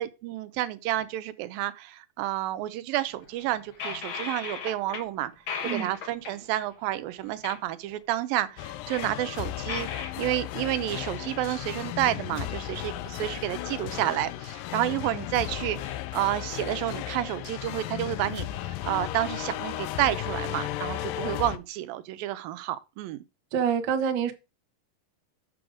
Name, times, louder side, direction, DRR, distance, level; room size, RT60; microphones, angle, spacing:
voice 1, 0.0-5.3 5.6-9.9 10.2-23.2, right 14 dB, 85° right, 2.4 m, -30 dB
sound 1, 3.3-5.1 5.3-6.5 7.4-7.6 7.9-8.0 8.6-10.3, left 6 dB, 60° left, 1.3 m, -36 dB
sound 2, 8.6-21.6, left 13 dB, 80° left, 2.3 m, -35 dB
voice 2, 23.5-24.3, right 7 dB, 65° right, 1.1 m, -26 dB
6.9 x 6.3 x 4.9 m
omnidirectional pair, 4.1 m